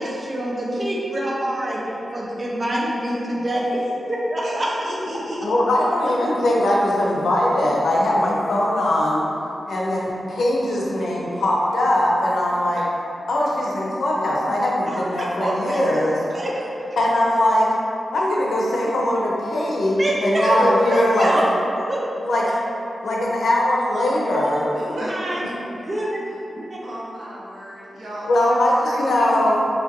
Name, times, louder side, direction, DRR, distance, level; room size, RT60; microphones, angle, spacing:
voice 1, 0.0-3.8 4.1-4.7 14.9-16.0 16.3-16.5 19.9-21.4 21.9-22.0 24.3-24.7 25.1-25.4 25.7-26.2 26.5-26.8, right 1 dB, 30° right, -4 dB, 0.6 m, -25 dB
voice 2, 4.4-5.4 12.7-12.8 20.4-21.0 24.7-25.3 26.8-29.3, right 1 dB, 70° right, -8 dB, 1.0 m, -33 dB
voice 3, 5.4-9.3 9.7-12.8 13.3-16.2 17.0-17.7 18.1-21.5 22.2-22.6 23.0-24.6 24.9-25.0 28.3-29.7, left 1 dB, 85° left, -4 dB, 0.6 m, -21 dB
4.3 x 3.1 x 2.6 m, 2.9 s
wide cardioid pair, 155°, 0 cm